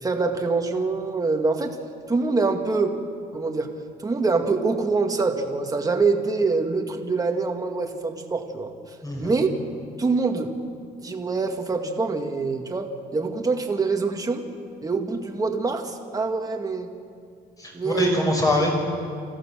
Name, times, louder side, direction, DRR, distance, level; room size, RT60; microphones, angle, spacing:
voice 1, 0.0-1.8 2.1-3.0 3.3-3.7 4.0-8.7 9.2-9.5 10.0-10.5 11.0-14.4 14.8-16.9 17.7-18.3, right 4 dB, 20° right, 3 dB, 2.1 m, -25 dB
voice 2, 9.0-9.4 17.6-18.8, left 1 dB, 20° left, 0 dB, 6.6 m, -24 dB
26.0 x 15.5 x 7.5 m, 2.3 s
cardioid pair, 110°, 17 cm